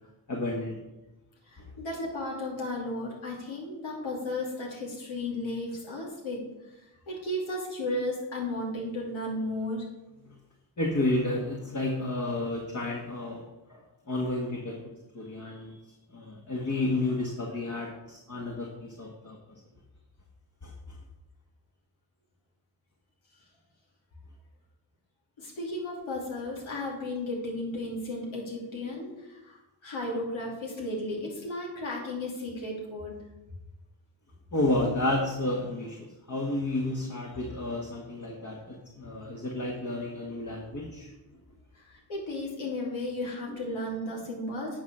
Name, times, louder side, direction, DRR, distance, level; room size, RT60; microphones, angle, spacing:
voice 1, 0.3-0.8 1.6-1.7 10.3-10.4 10.8-14.8 15.1-19.6 20.6-21.0 34.5-41.4 43.5-43.6, left 2 dB, 40° left, -1 dB, 1.8 m, -31 dB
voice 2, 1.5-6.4 7.1-9.8 25.4-33.2 41.8-44.8, left 1 dB, 80° left, -2 dB, 2.7 m, -34 dB
9.3 x 4.3 x 6.3 m, 0.99 s
supercardioid pair, 45°, 47 cm